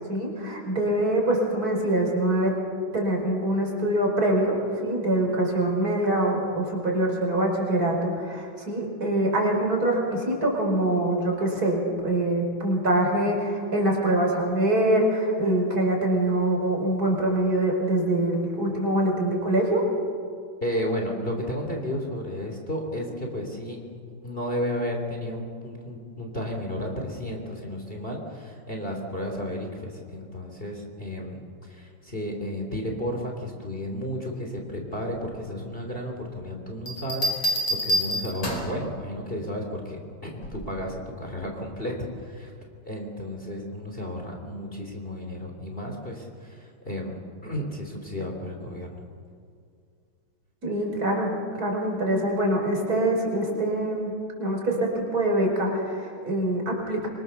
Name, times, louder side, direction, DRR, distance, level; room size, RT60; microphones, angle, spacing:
voice 1, 0.1-2.6 2.9-19.8 50.6-57.1, right 1 dB, 45° right, 0 dB, 5.3 m, -24 dB
voice 2, 20.6-23.8 24.2-42.5 42.8-49.0, equal, 25° left, 1 dB, 3.3 m, -33 dB
sound 1, 36.9-38.8 40.4-40.8, equal, 75° left, 5.7 m, -27 dB
25.0 x 25.0 x 7.0 m, 2.3 s
omnidirectional pair, 2.2 m